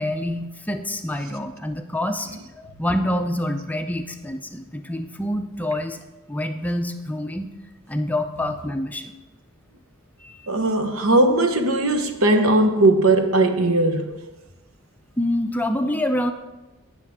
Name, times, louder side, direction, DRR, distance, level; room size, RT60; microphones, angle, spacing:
voice 1, 0.0-2.3 2.6-7.5 7.9-9.1 10.2-10.5 15.2-16.3, left 1 dB, 10° left, 0.5 m, -26 dB
voice 2, 10.5-14.1, right 2 dB, 70° right, 1.0 m, -18 dB
17.0 x 6.5 x 3.6 m
head